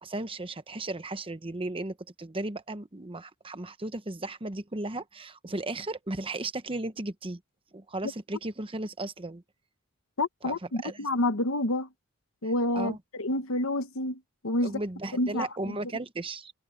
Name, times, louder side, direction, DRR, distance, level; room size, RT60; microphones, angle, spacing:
voice 1, 0.0-7.4 7.7-9.4 10.4-10.6 10.8-11.1 12.7-13.0 14.6-16.5, right 2 dB, 25° right, 1.0 m, -35 dB
voice 2, 10.2-11.9 12.4-14.8 15.1-15.7, left 1 dB, 65° left, 1.2 m, -29 dB
head